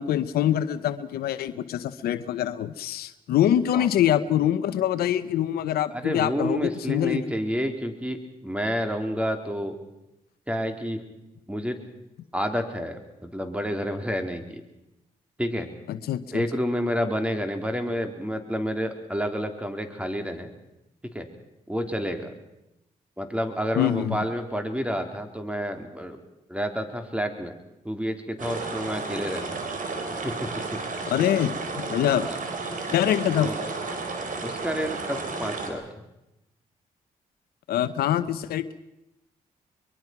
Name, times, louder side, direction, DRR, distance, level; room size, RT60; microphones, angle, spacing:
voice 1, 0.0-7.2 15.9-16.4 23.7-24.2 31.1-32.3 32.9-33.5 37.7-38.6, left 11 dB, 85° left, 14 dB, 0.9 m, -24 dB
voice 2, 5.9-9.8 10.5-11.0 11.5-11.8 12.3-14.6 15.4-15.7 16.3-20.5 21.1-21.3 21.7-22.3 23.2-26.2 26.5-27.6 27.8-29.4 30.1-30.8 32.2-32.4 33.3-33.6 34.4-36.1, equal, 10° right, 6 dB, 3.6 m, -29 dB
sound 1, 28.4-35.7, right 3 dB, 60° right, 4.2 m, -32 dB
23.5 x 22.5 x 6.0 m, 0.91 s
supercardioid pair, 55°, 15 cm